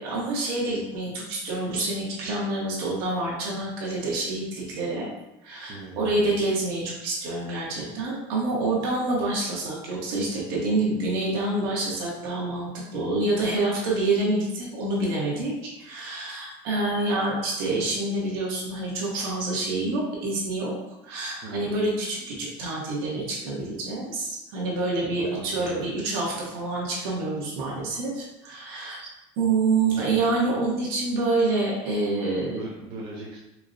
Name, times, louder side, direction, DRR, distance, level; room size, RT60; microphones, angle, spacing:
voice 1, 0.0-5.1 5.4-20.7 21.0-29.1 29.4-32.6, right 2 dB, 75° right, -4 dB, 1.2 m, -27 dB
voice 2, 5.7-6.5 21.4-21.8 25.2-25.8 29.9-30.2 32.5-33.4, right 2 dB, 40° right, -5 dB, 0.6 m, -40 dB
4.5 x 2.2 x 2.6 m, 0.96 s
cardioid pair, 175°, 12 cm